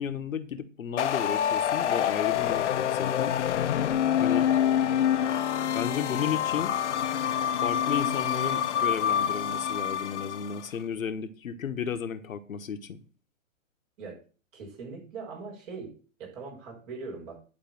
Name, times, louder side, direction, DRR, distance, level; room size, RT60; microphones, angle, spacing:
voice 1, 0.0-3.4 4.2-4.5 5.7-6.8 7.6-13.0, left 7 dB, 75° left, 1.3 m, -33 dB
sound 1, 1.0-10.6, left 9 dB, 60° left, 1.0 m, -26 dB
voice 2, 14.5-17.4, right 4 dB, 40° right, 6.5 m, -41 dB
11.0 x 4.8 x 7.6 m
hypercardioid pair, 135°, 40 cm